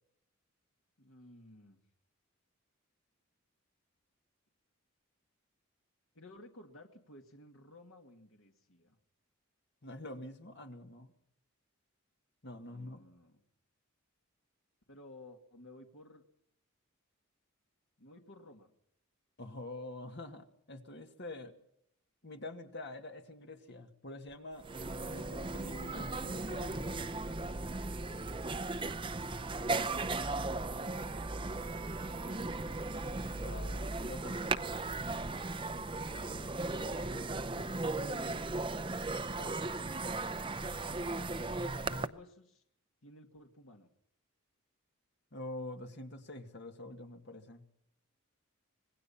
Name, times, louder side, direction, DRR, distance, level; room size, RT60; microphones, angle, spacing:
voice 1, 1.0-1.8 6.1-9.0 12.7-13.4 14.9-16.2 18.0-18.7 25.0-25.6 31.5-32.7 41.5-42.6 43.0-43.9, left 1 dB, 70° left, 3 dB, 2.3 m, -56 dB
voice 2, 9.8-11.1 12.4-13.0 19.4-21.5 22.2-24.7 25.1-27.1 33.3-34.4 39.3-39.7 45.3-47.6, left 2 dB, 50° left, 5 dB, 2.1 m, -46 dB
sound 1, 24.3-24.4 24.6-42.1, right 2 dB, 25° right, 0.7 m, -37 dB
26.0 x 19.5 x 5.7 m, 0.75 s
head